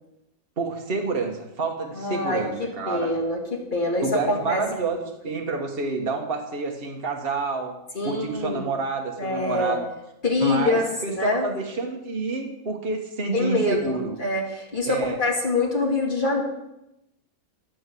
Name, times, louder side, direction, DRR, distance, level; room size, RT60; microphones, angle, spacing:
voice 1, 0.6-3.1 4.0-7.7 8.0-9.9 10.4-14.2 14.9-15.2, right 3 dB, 40° right, 2 dB, 1.6 m, -28 dB
voice 2, 1.9-5.0 7.9-8.7 9.2-9.8 10.2-11.5 13.3-16.4, left 2 dB, 35° left, -1 dB, 2.6 m, -25 dB
12.5 x 6.4 x 7.0 m, 0.86 s
omnidirectional pair, 1.5 m